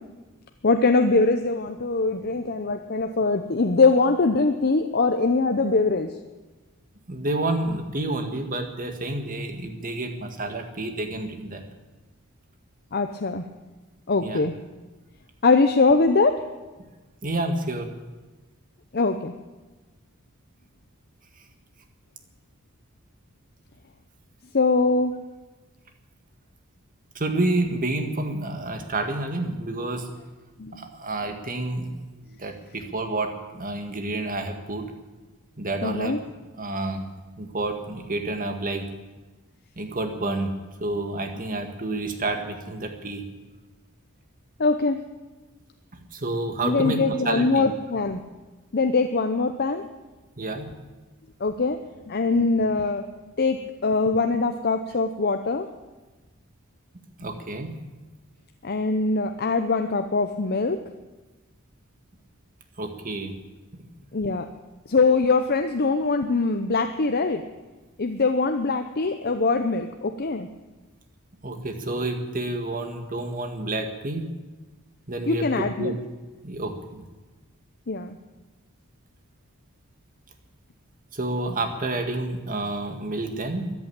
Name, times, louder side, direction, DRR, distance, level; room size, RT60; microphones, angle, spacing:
voice 1, 0.6-6.1 12.9-13.4 14.1-14.5 15.4-16.4 18.9-19.3 24.5-25.1 30.6-30.8 35.8-36.2 44.6-45.0 46.6-48.2 48.7-49.8 51.4-51.8 52.1-53.0 53.4-53.6 53.8-55.7 58.6-60.8 64.1-64.4 64.9-67.4 68.0-70.5 75.3-75.9 77.9-78.1, left 3 dB, 45° left, 7 dB, 0.8 m, -22 dB
voice 2, 7.1-11.6 14.2-14.4 17.2-17.9 27.2-30.1 30.7-31.9 32.3-34.8 35.6-36.2 36.6-37.1 37.4-38.9 39.8-40.5 40.8-43.2 46.1-47.7 50.4-50.7 57.2-57.8 62.8-63.3 63.7-63.8 71.4-74.3 75.1-76.0 76.4-77.0 81.1-83.7, right 2 dB, 40° right, 5 dB, 1.8 m, -29 dB
14.5 x 10.5 x 8.8 m, 1.2 s
head